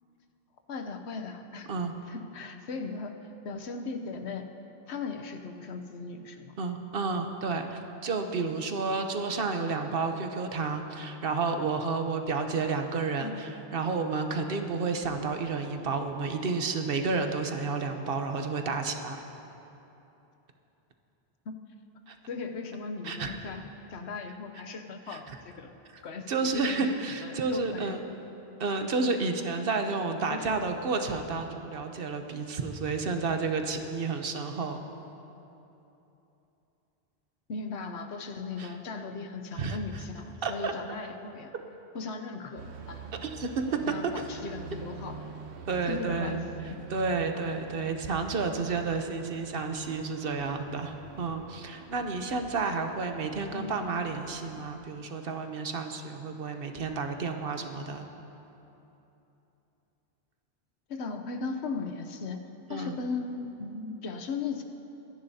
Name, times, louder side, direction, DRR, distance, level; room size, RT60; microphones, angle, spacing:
voice 1, 0.7-1.7 2.1-3.1 3.4-4.5 4.9-6.5 13.2-13.4 21.5-21.6 22.3-23.6 23.9-25.7 26.0-28.0 30.3-30.7 37.5-41.5 41.9-43.2 43.9-45.3 45.9-46.4 53.5-53.8 60.9-62.4 62.7-64.6, left 4 dB, 85° left, 5 dB, 1.1 m, -37 dB
voice 2, 6.6-19.2 22.1-22.2 23.0-23.3 25.1-25.2 25.9-26.0 26.3-28.0 28.6-34.8 38.6-38.7 39.5-39.8 40.4-40.7 43.2-43.6 44.1-44.2 45.7-46.4 46.9-58.1 62.7-63.0, right 4 dB, 60° right, 5 dB, 1.0 m, -31 dB
sound 1, 42.6-54.6, right 4 dB, 85° right, 1.1 m, -46 dB
24.5 x 10.5 x 2.8 m, 3.0 s
omnidirectional pair, 1.1 m